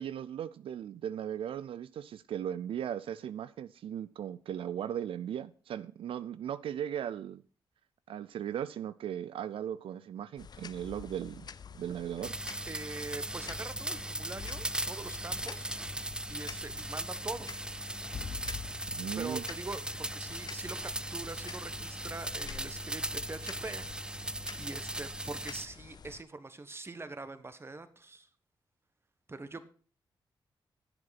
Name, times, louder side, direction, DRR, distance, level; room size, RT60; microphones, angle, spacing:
voice 1, 0.0-7.4 8.1-11.5 11.7-12.3 18.9-19.4, right 9 dB, 80° right, 0.4 m, -37 dB
sound 1, 10.4-26.2, left 6 dB, 50° left, 0.6 m, -47 dB
sound 2, 12.2-25.7, right 1 dB, 10° right, 0.5 m, -38 dB
voice 2, 12.7-15.7 16.3-17.5 19.2-23.9 24.1-28.3 29.3-29.7, right 3 dB, 25° right, 1.4 m, -43 dB
10.5 x 7.9 x 5.9 m
cardioid pair, 80°, 9 cm